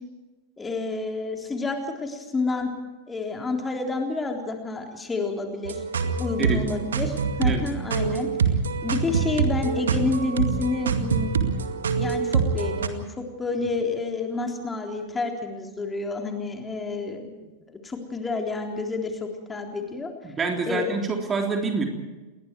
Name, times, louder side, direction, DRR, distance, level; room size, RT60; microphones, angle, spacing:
voice 1, 0.6-2.7 3.1-5.8 6.1-8.3 8.8-11.4 12.0-20.1 20.7-20.9, left 3 dB, 15° left, 2 dB, 3.8 m, -29 dB
sound 1, 5.6-12.9, right 5 dB, 65° right, 2.1 m, -25 dB
voice 2, 20.2-21.8, right 4 dB, 20° right, 2 dB, 3.6 m, -27 dB
29.5 x 21.5 x 4.7 m, 1.2 s
figure-of-eight pair, 90°, 0 cm